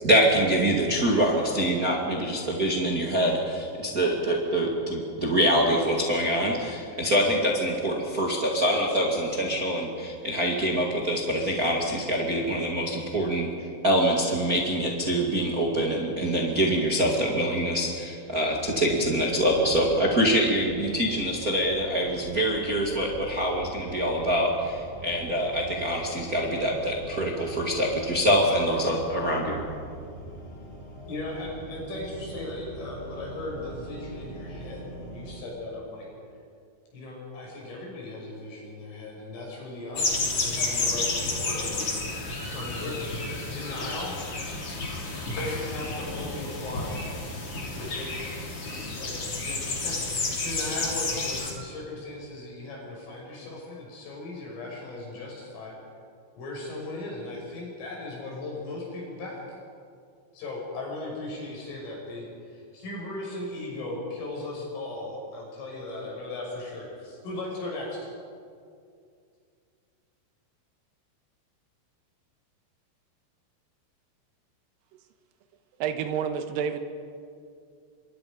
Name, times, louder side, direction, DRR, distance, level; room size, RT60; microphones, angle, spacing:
voice 1, 0.0-29.6, equal, 60° right, -2 dB, 0.9 m, -25 dB
sound 1, 18.5-35.4, right 2 dB, 15° left, 5.1 m, -43 dB
voice 2, 31.1-36.1 36.9-42.0 42.5-43.1 43.5-44.1 45.3-47.0 47.7-48.3 49.0-55.7 56.4-59.6 60.3-68.1, left 2 dB, 80° left, -2 dB, 8.8 m, -37 dB
sound 2, 39.9-51.5, left 3 dB, 35° left, 3.3 m, -31 dB
voice 3, 75.8-76.8, right 7 dB, 80° right, 7 dB, 2.1 m, -29 dB
28.0 x 24.5 x 5.2 m, 2.3 s
omnidirectional pair, 5.7 m